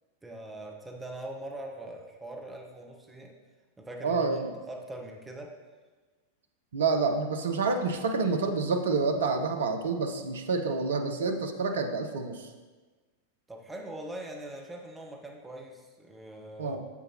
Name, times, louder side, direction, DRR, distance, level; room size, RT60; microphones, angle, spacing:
voice 1, 0.2-3.3 3.8-5.5 13.5-16.8, right 1 dB, 10° right, 0 dB, 0.9 m, -42 dB
voice 2, 4.0-4.5 6.7-12.5 16.6-16.8, right 4 dB, 65° right, 5 dB, 0.7 m, -28 dB
8.3 x 6.9 x 2.9 m, 1.3 s
figure-of-eight pair, 90°, 0 cm